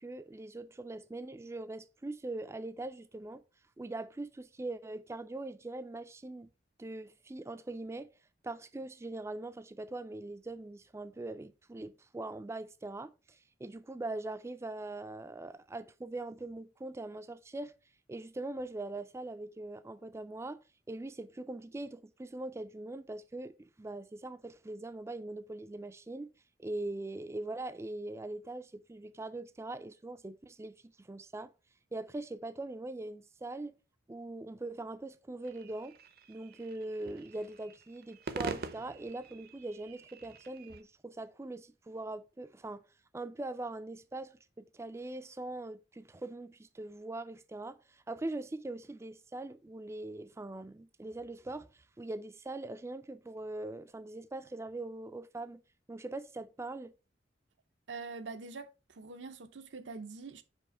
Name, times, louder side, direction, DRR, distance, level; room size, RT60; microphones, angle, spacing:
voice 1, 0.0-3.4 3.8-6.5 6.8-8.1 8.4-17.7 18.1-20.6 20.9-26.3 26.6-31.5 31.9-33.7 34.1-36.0 36.3-42.8 43.1-51.7 52.0-55.6 55.9-56.9, right 2 dB, 15° right, 0.3 m, -42 dB
sound 1, 35.4-40.8, right 4 dB, 55° right, 0.6 m, -44 dB
voice 2, 57.9-60.4, right 4 dB, 90° right, 0.7 m, -44 dB
5.3 x 5.0 x 4.7 m
head